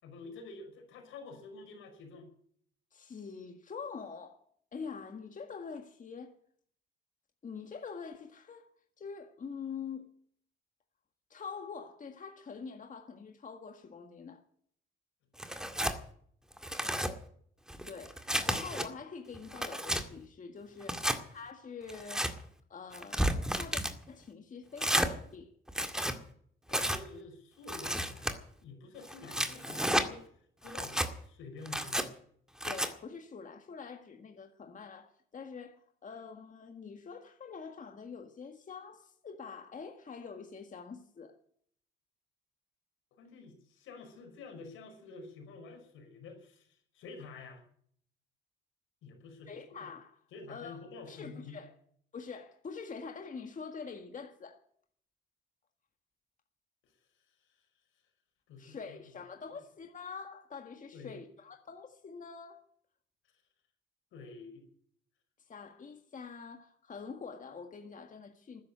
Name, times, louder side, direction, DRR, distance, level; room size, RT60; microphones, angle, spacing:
voice 1, 0.0-2.3 20.9-21.1 26.7-28.3 28.6-30.3 30.6-32.1 43.1-47.6 49.0-49.9 50.3-51.6 57.5-57.6 58.5-59.0 60.9-61.2 64.1-64.7, left 3 dB, 85° left, 5.5 m, -49 dB
voice 2, 2.9-4.4 4.7-6.4 7.4-8.7 9.0-10.1 11.3-14.4 17.9-22.4 22.7-23.8 24.1-25.5 32.7-41.4 49.5-50.1 50.5-51.7 52.1-54.6 58.6-62.6 65.5-68.6, left 5 dB, 40° left, 1.7 m, -45 dB
Tearing, 15.4-16.0 16.5-17.1 17.7-18.9 19.3-20.0 20.8-21.2 21.9-22.3 22.9-23.9 24.8-25.1 25.7-26.2 26.7-27.0 27.7-28.3 29.1-30.1 30.7-31.1 31.7-32.1 32.6-32.9, equal, 5° right, 2.0 m, -32 dB
13.0 x 10.5 x 9.0 m
cardioid pair, 90°, 20 cm